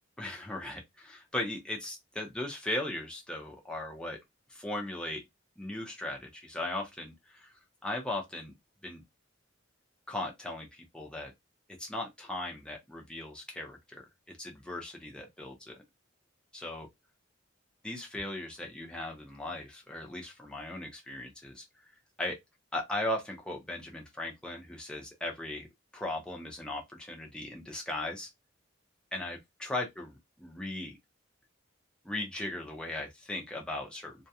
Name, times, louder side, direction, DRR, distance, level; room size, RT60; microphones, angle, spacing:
voice 1, 0.2-4.2 4.5-5.2 5.6-7.5 7.8-8.5 8.8-9.0 10.1-11.3 11.8-15.8 16.5-16.9 17.8-21.6 22.2-22.4 22.7-25.7 25.9-28.3 29.1-30.9 32.0-34.3, left 1 dB, 5° left, 0.6 m, -38 dB
2.3 x 2.2 x 2.7 m
head